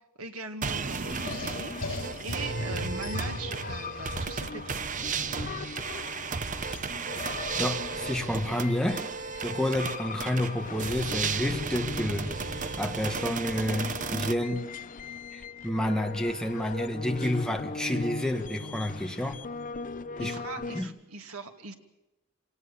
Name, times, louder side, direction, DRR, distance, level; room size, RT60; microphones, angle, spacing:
voice 1, 0.2-4.9 20.2-21.7, right 3 dB, 80° right, 6 dB, 2.2 m, -40 dB
sound 1, 0.6-14.3, right 5 dB, 35° right, 0.8 m, -35 dB
sound 2, 0.9-4.4, left 1 dB, 75° left, 6.1 m, -36 dB
sound 3, 1.0-20.8, left 3 dB, 40° left, 0.7 m, -39 dB
voice 2, 7.5-9.1 9.4-14.7 15.3-19.4 20.2-20.4 20.7-20.9, left 1 dB, 5° left, 4 dB, 1.7 m, -30 dB
27.0 x 18.5 x 7.1 m, 1.0 s
head